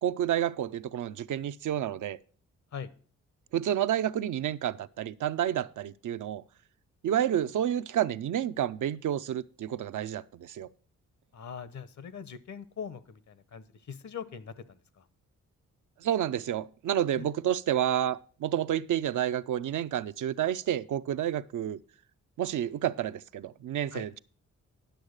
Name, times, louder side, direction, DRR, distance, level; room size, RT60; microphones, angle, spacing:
voice 1, 0.0-2.2 3.5-6.4 7.0-10.7 16.0-21.8 22.4-24.2, right 10 dB, 70° right, 0.5 m, -30 dB
voice 2, 11.3-15.1 17.1-17.3 23.9-24.1, left 7 dB, 65° left, 0.9 m, -42 dB
10.5 x 6.3 x 6.5 m
cardioid pair, 70°, 31 cm